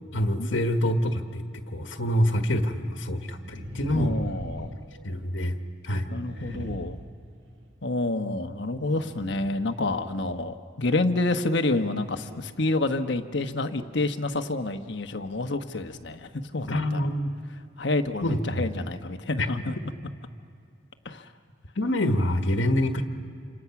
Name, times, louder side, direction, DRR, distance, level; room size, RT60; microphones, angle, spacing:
voice 1, 0.1-4.1 5.0-5.6 5.8-6.1 6.4-6.6 16.7-17.3 18.2-18.7 19.4-19.5 21.7-23.0, left 1 dB, 85° left, 5 dB, 1.6 m, -26 dB
sound 1, 2.3-2.4 3.3-5.5 6.2-7.7 8.9-9.7 10.2-10.3, right 1 dB, 75° right, 1.7 m, -39 dB
voice 2, 3.9-4.7 6.1-7.0 7.8-17.0 17.8-19.8 21.0-21.2, left 2 dB, 70° left, 7 dB, 1.2 m, -28 dB
28.5 x 26.5 x 6.0 m, 2.5 s
head